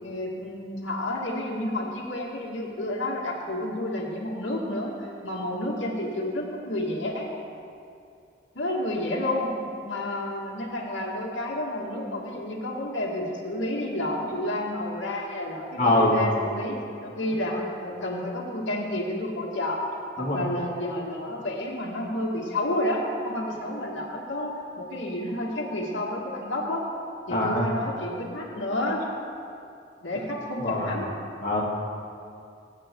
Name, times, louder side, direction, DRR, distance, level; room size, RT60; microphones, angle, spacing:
voice 1, 0.0-7.3 8.5-9.5 9.8-19.8 20.2-26.8 27.3-29.0 30.0-31.1, left 1 dB, 85° left, -3 dB, 2.3 m, -30 dB
voice 2, 15.8-16.2 20.2-20.4 27.3-27.6 30.6-31.0 31.4-31.6, left 1 dB, 40° left, -6 dB, 2.5 m, -23 dB
23.5 x 8.9 x 3.9 m, 2.5 s
head